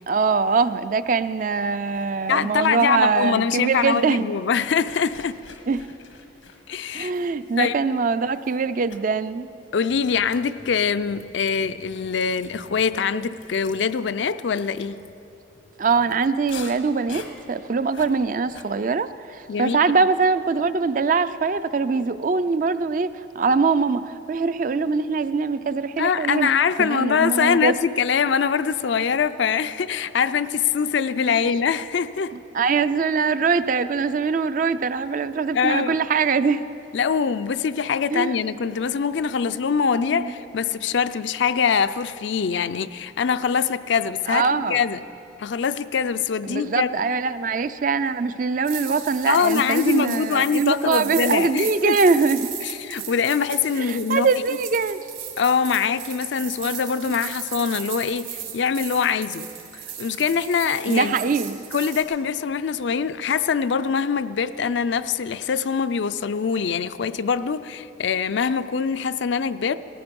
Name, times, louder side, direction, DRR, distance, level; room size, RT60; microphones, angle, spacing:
voice 1, 0.1-4.3 5.7-5.9 6.9-9.5 15.8-26.5 26.8-27.8 31.3-31.4 32.5-36.7 38.1-38.3 40.1-40.3 44.3-44.8 46.5-52.5 53.8-55.0 57.1-57.2 60.9-61.7, right 4 dB, 40° right, 13 dB, 0.4 m, -22 dB
sound 1, 1.9-3.4 3.7-7.9 8.4-8.6 8.9-9.1 9.7-18.7, left 4 dB, 90° left, 1.3 m, -46 dB
voice 2, 2.3-5.4 6.7-7.1 7.6-7.8 9.7-15.0 19.5-19.8 26.0-32.3 35.5-36.0 36.9-45.0 45.4-46.9 49.3-52.2 52.6-54.3 55.4-59.5 59.7-61.3 61.7-69.7, left 6 dB, 70° left, 13 dB, 0.4 m, -23 dB
sound 2, 48.6-62.0, right 9 dB, 75° right, 2.7 m, -36 dB
18.5 x 14.5 x 5.3 m, 2.9 s
head